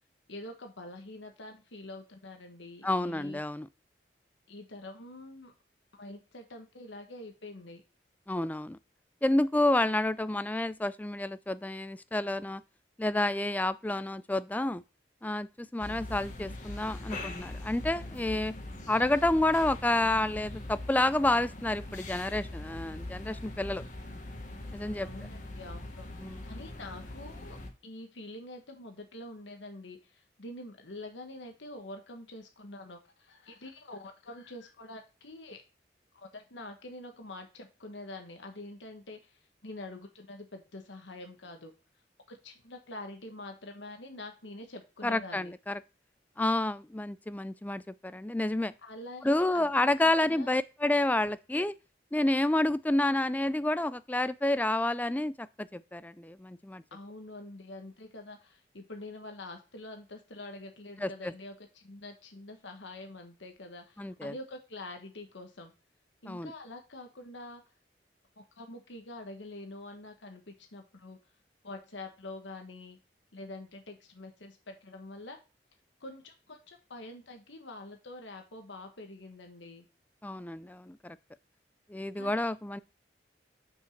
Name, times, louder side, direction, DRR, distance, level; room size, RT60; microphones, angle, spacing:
voice 1, 0.3-3.4 4.5-5.5 5.9-7.8 25.0-26.1 26.4-27.6 27.8-35.6 36.1-41.7 42.3-45.5 48.8-50.5 56.9-65.7 66.2-67.6 68.4-71.2 71.6-73.0 73.3-75.4 76.0-79.8 82.1-82.5, left 2 dB, 90° left, 1.5 m, -46 dB
voice 2, 2.8-3.7 8.3-8.8 9.2-12.6 13.0-14.8 15.2-18.5 18.9-23.8 24.7-25.1 26.2-26.4 45.0-45.8 46.4-48.7 49.2-51.8 52.1-56.8 61.0-61.3 64.0-64.3 66.3-66.5 80.2-81.2 81.9-82.8, left 1 dB, 10° left, 0.3 m, -29 dB
sound 1, 15.8-27.7, left 1 dB, 45° left, 1.5 m, -42 dB
6.5 x 5.4 x 6.6 m
head